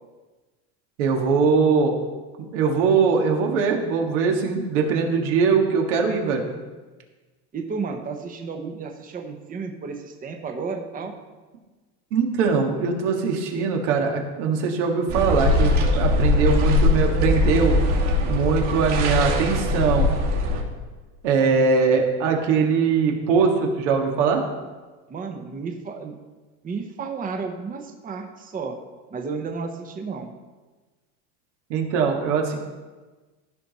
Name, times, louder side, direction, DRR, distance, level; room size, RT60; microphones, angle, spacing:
voice 1, 1.0-1.9 2.5-6.4 12.1-17.8 18.3-20.1 21.2-24.4 31.7-32.6, right 5 dB, 80° right, 2 dB, 1.8 m, -21 dB
voice 2, 7.5-11.1 25.1-26.2 26.6-28.8 29.1-30.3, right 4 dB, 25° right, 4 dB, 0.9 m, -32 dB
sound 1, 15.1-20.6, left 2 dB, 60° right, 3.0 m, -21 dB
15.0 x 5.2 x 4.2 m, 1.3 s
supercardioid pair, 120°, 35 cm